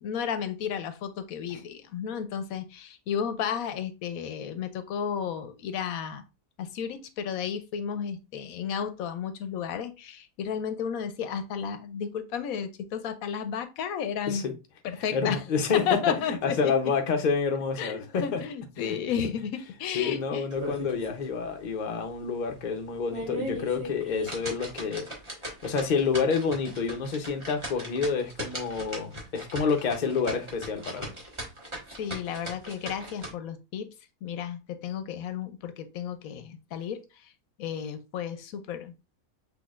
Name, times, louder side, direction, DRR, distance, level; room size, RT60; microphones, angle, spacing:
voice 1, 0.0-6.2 6.6-14.4 14.8-15.4 15.7-16.9 17.8-20.5 32.0-33.9 34.2-37.3 37.6-38.9, left 7 dB, 75° left, 1.0 m, -33 dB
voice 2, 15.1-15.8 16.2-18.4 18.8-18.9 19.9-25.1 25.6-31.1, left 5 dB, 40° left, 0.7 m, -28 dB
sound 1, 20.5-21.2 21.6-21.7 22.2-22.3 22.9-33.3, equal, 20° right, 1.4 m, -38 dB
6.1 x 3.3 x 2.4 m
omnidirectional pair, 1.5 m